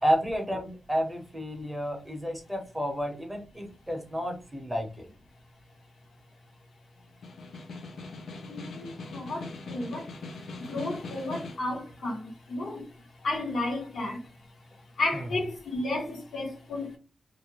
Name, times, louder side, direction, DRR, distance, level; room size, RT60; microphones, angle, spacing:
voice 1, 0.0-5.1, equal, 10° right, 0.7 m, -31 dB
Snare drum, 7.1-11.7, left 3 dB, 90° left, 0.5 m, -41 dB
voice 2, 8.4-14.3 15.0-17.0, left 2 dB, 65° left, 0.9 m, -33 dB
2.4 x 2.1 x 2.9 m
wide cardioid pair, 120°, 0 cm